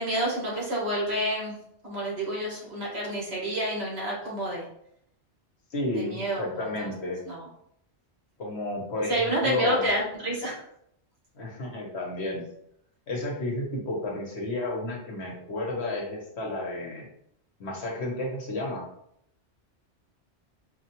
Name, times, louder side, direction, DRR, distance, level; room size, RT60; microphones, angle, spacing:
voice 1, 0.0-1.6 1.8-4.7 5.9-6.9 7.2-7.5 9.1-10.6, right 1 dB, 65° right, -4 dB, 1.6 m, -29 dB
voice 2, 5.7-7.2 8.4-9.8 11.3-12.4 13.1-17.0 17.6-18.9, left 2 dB, 70° left, -1 dB, 1.2 m, -32 dB
4.5 x 2.4 x 2.8 m, 0.73 s
omnidirectional pair, 1.2 m